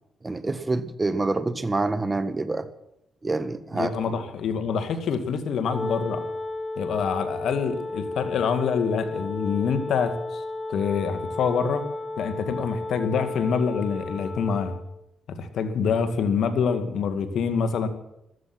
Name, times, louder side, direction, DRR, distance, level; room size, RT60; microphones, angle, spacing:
voice 1, 0.2-2.7 3.2-3.9, right 3 dB, 25° right, 13 dB, 1.6 m, -26 dB
voice 2, 3.7-6.2 6.8-10.4 10.7-11.8 12.2-14.7 15.3-17.9, left 6 dB, 75° left, 10 dB, 2.1 m, -26 dB
Wind instrument woodwind instrument, 5.7-14.9, left 2 dB, 25° left, 5.1 m, -33 dB
15.0 x 14.0 x 6.1 m, 0.83 s
supercardioid pair, 60°, 0 cm